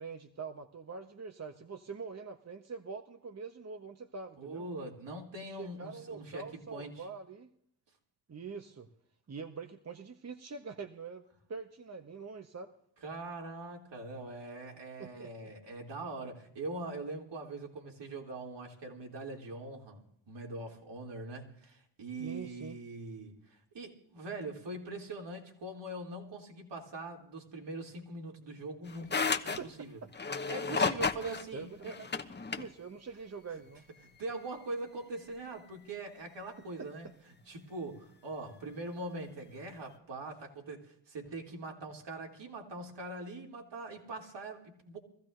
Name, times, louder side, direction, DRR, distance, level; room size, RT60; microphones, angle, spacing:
voice 1, 0.0-4.7 5.5-7.5 8.3-8.9 9.3-11.2 11.5-12.7 15.0-15.5 22.2-22.8 29.6-29.7 31.5-32.1 32.6-33.8 36.8-36.9, right 5 dB, 30° right, 5 dB, 1.2 m, -44 dB
voice 2, 4.4-7.1 13.0-30.0 30.5-32.0 33.5-33.6 34.2-37.1 37.5-45.0, right 2 dB, 60° right, 0 dB, 3.2 m, -42 dB
sound 1, 28.9-29.6 30.1-32.7, left 4 dB, 20° left, 1.1 m, -33 dB
23.5 x 15.0 x 2.7 m, 0.68 s
hypercardioid pair, 45°, 48 cm